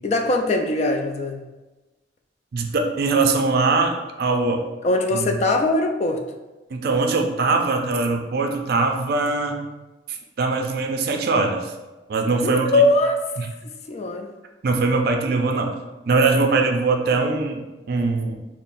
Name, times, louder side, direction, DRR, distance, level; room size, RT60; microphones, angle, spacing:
voice 1, 0.0-1.4 4.8-6.2 12.4-13.2 13.9-14.3, left 2 dB, 35° left, 4 dB, 0.3 m, -21 dB
voice 2, 2.5-4.6 5.1-5.3 6.7-9.6 10.1-11.7 12.1-12.8 13.4-13.5 14.6-15.7 16.1-18.3, right 3 dB, 55° right, 3 dB, 0.4 m, -22 dB
5.4 x 2.0 x 2.5 m, 1.1 s
head